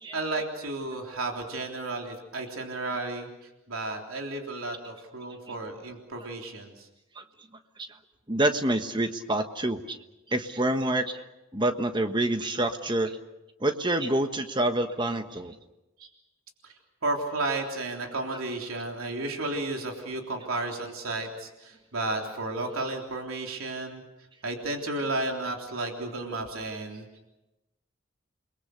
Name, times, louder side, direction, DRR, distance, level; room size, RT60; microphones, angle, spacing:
voice 1, 0.1-3.3 3.7-6.9 16.0-16.1 16.6-16.7 17.0-24.0 24.4-27.0, right 2 dB, 90° right, 2 dB, 3.6 m, -33 dB
voice 2, 8.3-10.0 10.3-11.2 11.5-13.2 13.6-15.5, right 1 dB, 20° right, 7 dB, 1.4 m, -27 dB
29.0 x 22.0 x 6.7 m, 0.98 s
head